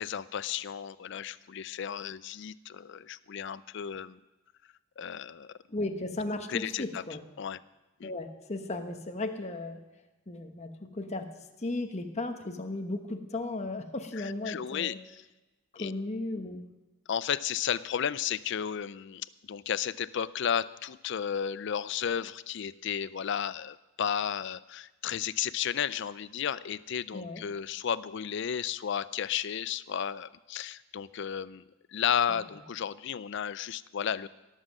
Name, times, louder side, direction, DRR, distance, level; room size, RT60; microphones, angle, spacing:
voice 1, 0.0-4.2 5.0-5.5 6.5-7.0 7.4-7.6 8.0-8.1 14.2-15.2 15.8-15.9 17.1-31.6 31.9-34.3, left 8 dB, 55° left, 17 dB, 0.4 m, -33 dB
voice 2, 5.7-7.2 8.0-9.8 10.3-11.3 11.6-15.0 15.7-16.7 27.1-27.4 32.3-32.4, left 2 dB, 30° left, 5 dB, 1.0 m, -35 dB
17.5 x 7.4 x 6.4 m, 1.1 s
head